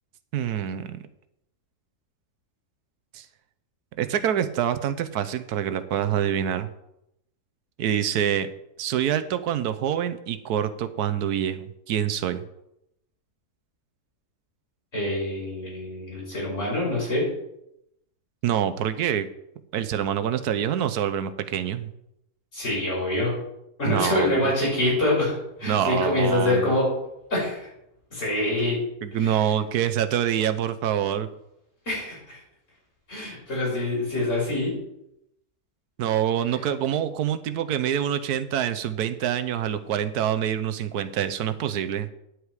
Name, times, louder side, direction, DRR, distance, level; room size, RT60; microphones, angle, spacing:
voice 1, 0.3-1.0 3.1-3.3 4.0-6.7 7.8-8.5 8.8-12.4 18.4-19.3 19.7-21.9 23.8-24.4 25.6-26.7 29.0-31.3 33.2-33.3 36.0-42.1, right 9 dB, 85° right, 12 dB, 1.3 m, -26 dB
voice 2, 14.9-17.2 22.5-23.3 23.8-26.9 27.3-27.7 28.1-28.8 29.1-29.4 31.9-32.4 33.1-34.7, left 1 dB, 50° left, -5 dB, 5.5 m, -25 dB
10.0 x 8.1 x 4.8 m, 0.82 s
omnidirectional pair, 1.6 m